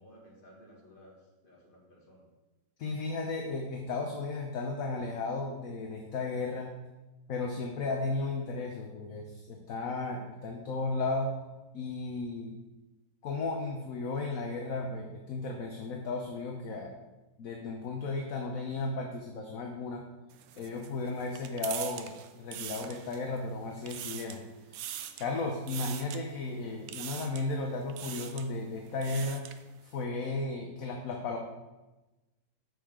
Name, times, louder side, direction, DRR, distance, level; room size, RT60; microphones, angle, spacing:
voice 1, 0.0-2.3, equal, 30° left, -3 dB, 2.2 m, -56 dB
voice 2, 2.8-6.8 7.3-11.3 11.7-12.5 13.2-16.9 17.4-20.1 20.6-24.9 25.2-29.5 29.8-31.4, left 3 dB, 60° left, 2 dB, 1.2 m, -34 dB
sound 1, 20.3-23.4 23.7-24.4 24.7-25.3 25.7-26.2 26.9-27.5 27.9-28.5 28.9-29.6, right 10 dB, 80° right, 1.3 m, -42 dB
8.7 x 6.7 x 3.7 m, 1.1 s
omnidirectional pair, 1.9 m